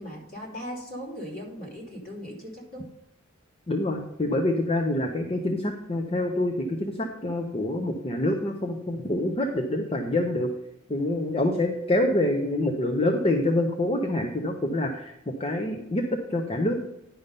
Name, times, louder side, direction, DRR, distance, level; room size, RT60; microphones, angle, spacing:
voice 1, 0.0-2.9, equal, 45° left, -2 dB, 2.8 m, -38 dB
voice 2, 3.7-10.5 10.9-16.8, left 1 dB, 30° left, 4 dB, 0.7 m, -26 dB
10.0 x 5.4 x 5.3 m, 0.86 s
head